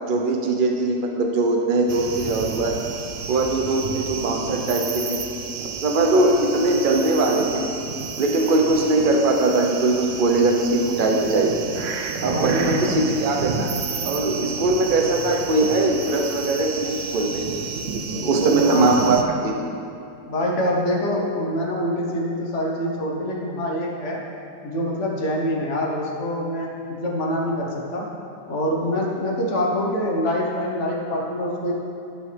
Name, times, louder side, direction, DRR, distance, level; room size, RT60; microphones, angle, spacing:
voice 1, 0.1-2.7 3.3-5.2 5.6-7.7 8.2-11.5 12.1-13.7 14.0-17.4 18.0-19.2 19.4-19.5, right 2 dB, 40° right, 1 dB, 0.8 m, -21 dB
sound 1, 1.9-19.2, right 5 dB, 75° right, 0.5 m, -31 dB
voice 2, 12.2-13.0 18.1-19.2 20.3-24.2 24.6-28.1 28.5-31.7, equal, 45° left, -2 dB, 1.4 m, -25 dB
12.0 x 6.1 x 3.4 m, 2.7 s
omnidirectional pair, 1.8 m